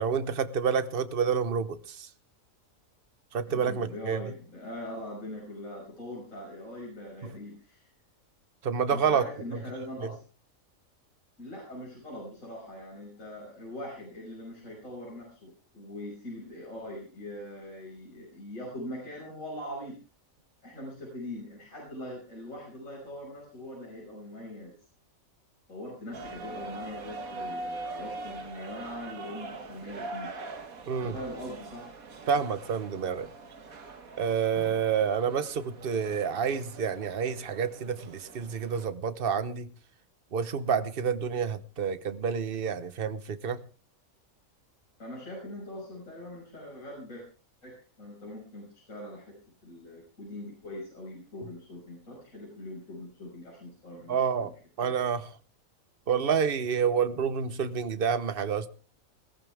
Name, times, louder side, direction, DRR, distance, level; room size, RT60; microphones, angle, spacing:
voice 1, 0.0-2.1 3.3-4.2 8.6-9.2 9.5-9.6 30.9-31.1 32.3-33.3 34.2-39.7 40.3-43.6 54.1-54.5 54.8-55.3 56.1-58.7, right 6 dB, 45° right, 1.1 m, -28 dB
voice 2, 3.4-7.9 8.9-10.2 11.4-20.0 20.6-24.7 25.7-30.3 31.0-31.9 45.0-47.2 47.6-49.4 49.6-54.5 54.8-54.9, left 1 dB, 70° left, 6.5 m, -42 dB
sound 1, 26.1-38.9, right 2 dB, 85° right, 2.0 m, -43 dB
20.5 x 14.5 x 3.5 m
omnidirectional pair, 1.4 m